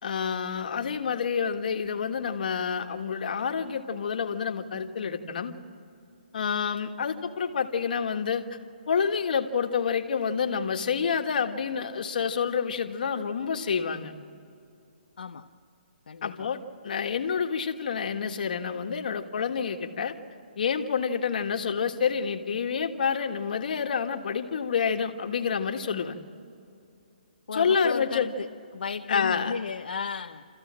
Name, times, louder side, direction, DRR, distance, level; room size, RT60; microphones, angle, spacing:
voice 1, 0.0-5.5 6.3-8.4 8.9-14.1 16.2-20.1 20.6-26.2 27.5-28.3 29.1-29.5, left 6 dB, 60° left, 5 dB, 1.7 m, -28 dB
voice 2, 15.2-15.5 16.1-16.5 27.5-30.5, left 5 dB, 80° left, 5 dB, 0.7 m, -34 dB
27.5 x 14.5 x 7.6 m, 2.6 s
hypercardioid pair, 150°, 5 cm